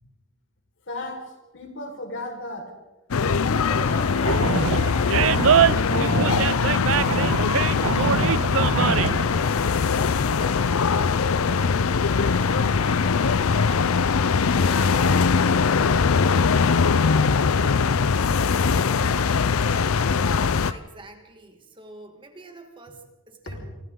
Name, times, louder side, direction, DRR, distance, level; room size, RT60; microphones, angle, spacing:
voice 1, 0.9-1.2 1.5-2.7 3.2-6.4 14.5-15.9 16.1-19.0, left 2 dB, 60° left, 3 dB, 4.8 m, -36 dB
sound 1, 3.1-20.7, left 5 dB, 90° left, 0.6 m, -21 dB
sound 2, 3.5-20.8, left 3 dB, 30° left, 2.5 m, -39 dB
Animal, 4.2-9.3, right 6 dB, 75° right, 0.6 m, -22 dB
voice 2, 7.6-12.7 20.6-23.7, right 2 dB, 25° right, 4 dB, 2.3 m, -48 dB
28.0 x 25.0 x 3.8 m, 1.1 s
head